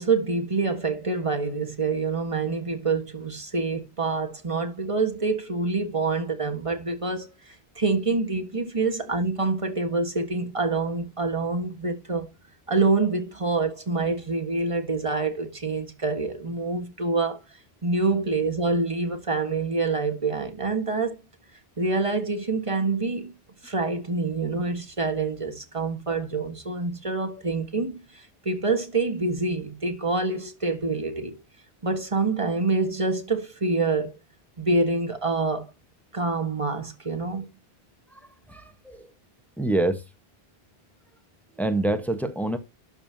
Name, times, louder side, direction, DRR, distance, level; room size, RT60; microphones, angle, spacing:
voice 1, 0.0-7.3 7.8-12.3 12.7-17.4 17.8-21.2 21.8-23.3 23.6-31.4 31.8-34.1 34.6-35.7 36.1-37.4, right 3 dB, 30° right, 1.6 m, -26 dB
voice 2, 38.5-39.1 39.6-40.0 41.6-42.6, right 2 dB, ahead, 1.1 m, -26 dB
12.0 x 5.5 x 2.8 m
omnidirectional pair, 1.0 m